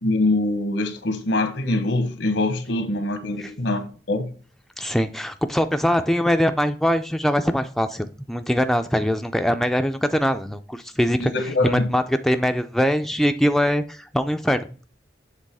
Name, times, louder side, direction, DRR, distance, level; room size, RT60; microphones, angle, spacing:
voice 1, 0.0-4.3 11.2-11.9, left 2 dB, 85° left, 1.2 m, -24 dB
voice 2, 4.8-11.3 11.6-14.8, equal, ahead, 0.3 m, -22 dB
7.6 x 3.4 x 4.7 m
head